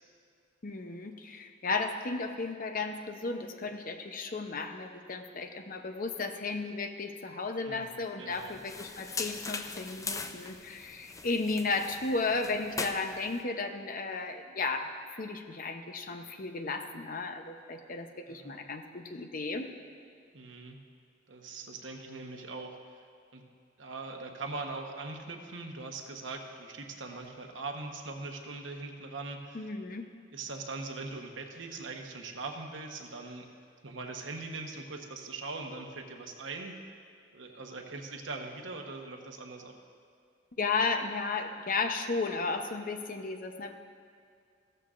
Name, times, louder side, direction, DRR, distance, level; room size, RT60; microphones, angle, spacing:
voice 1, 0.6-19.7 29.5-30.1 40.6-43.7, left 3 dB, 45° left, 6 dB, 0.7 m, -34 dB
voice 2, 8.2-8.6 18.3-18.6 20.3-20.8 21.3-23.0 23.3-23.4 23.8-29.7 30.3-33.4 33.8-36.7 37.3-39.7, right 3 dB, 80° right, 3 dB, 1.1 m, -41 dB
sound 1, 8.3-13.4, left 4 dB, 15° left, 0.4 m, -40 dB
15.0 x 13.5 x 2.5 m, 2.3 s
head